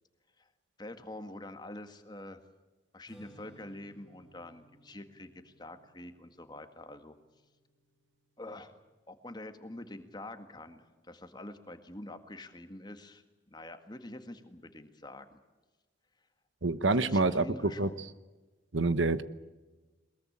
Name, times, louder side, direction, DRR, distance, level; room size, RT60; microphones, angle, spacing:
voice 1, 0.8-2.4 2.9-7.2 8.4-8.7 9.1-15.4 16.9-18.0, left 1 dB, 20° left, 8 dB, 1.8 m, -46 dB
Strum, 3.1-9.4, right 1 dB, 5° right, 7.1 m, -61 dB
voice 2, 16.6-17.9 18.7-19.2, right 3 dB, 75° right, 14 dB, 1.1 m, -27 dB
22.5 x 21.5 x 8.7 m, 1.2 s
head